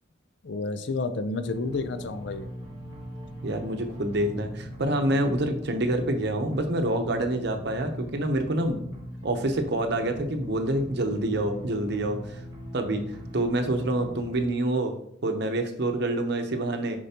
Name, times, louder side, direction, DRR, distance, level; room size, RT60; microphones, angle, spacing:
voice 1, 0.4-2.5, left 3 dB, 65° left, 10 dB, 0.5 m, -30 dB
sound 1, 1.5-14.4, equal, 20° right, 1.3 m, -40 dB
voice 2, 3.4-12.4 12.7-13.0 13.3-14.9 15.2-17.0, right 1 dB, 60° right, 5 dB, 0.8 m, -27 dB
6.7 x 5.2 x 2.9 m, 0.73 s
head